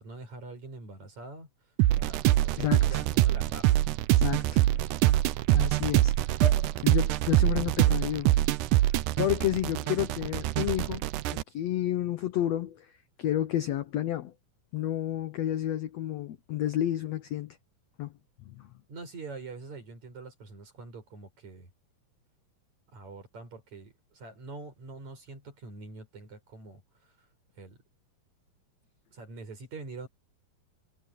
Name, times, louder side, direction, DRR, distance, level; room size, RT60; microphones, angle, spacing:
voice 1, 0.0-1.5 1.9-3.8 18.9-21.7 22.9-26.8 27.6-27.8 29.1-30.1, right 3 dB, 50° right, 7.3 m, -44 dB
sound 1, 1.8-11.4, right 15 dB, 75° right, 2.0 m, -24 dB
voice 2, 2.6-3.0 4.2-4.9 5.5-8.3 9.2-12.9 13.2-14.3 14.7-17.6 18.0-18.1 18.4-18.7, left 12 dB, 75° left, 1.5 m, -31 dB
omnidirectional pair, 4.1 m